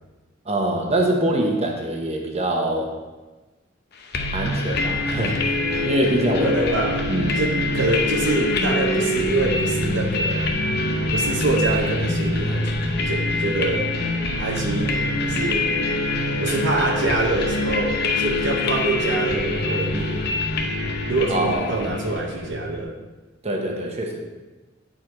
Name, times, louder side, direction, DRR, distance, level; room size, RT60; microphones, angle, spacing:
voice 1, 0.4-2.9 4.3-6.8 7.1-7.7 21.3-21.9 23.4-24.2, right 1 dB, 35° right, 1 dB, 1.0 m, -24 dB
sound 1, 4.1-22.8, left 2 dB, 60° left, 0.8 m, -24 dB
voice 2, 6.4-7.1 7.4-10.5 11.1-12.8 13.1-13.9 14.4-15.7 16.4-20.3 21.1-22.9, right 2 dB, 70° right, 1 dB, 0.9 m, -25 dB
8.6 x 4.6 x 4.6 m, 1.2 s
head